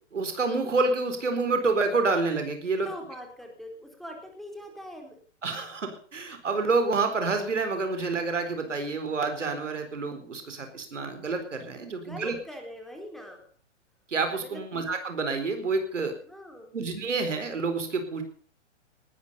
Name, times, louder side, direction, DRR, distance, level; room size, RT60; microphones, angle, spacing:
voice 1, 0.1-2.9 5.4-12.4 14.1-16.2 16.7-18.2, right 3 dB, 80° right, 7 dB, 4.4 m, -28 dB
voice 2, 2.8-5.2 12.0-13.4 14.4-14.6 16.3-16.7, equal, ahead, 2 dB, 4.1 m, -42 dB
19.5 x 13.0 x 5.5 m, 0.44 s
hypercardioid pair, 120°, 36 cm